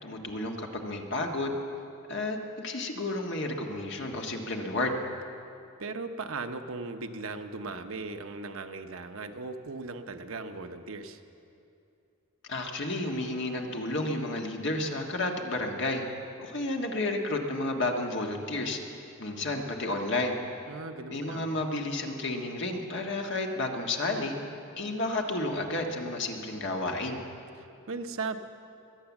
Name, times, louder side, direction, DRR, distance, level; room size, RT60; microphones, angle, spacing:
voice 1, 0.0-1.6 2.1-5.0 12.5-16.1 16.4-18.8 19.2-20.4 21.1-24.3 24.8-27.2, left 2 dB, 60° left, 2 dB, 1.6 m, -31 dB
voice 2, 5.8-11.2 20.7-21.6 27.6-28.4, right 3 dB, 75° right, 7 dB, 0.9 m, -38 dB
22.5 x 8.9 x 7.2 m, 2.6 s
head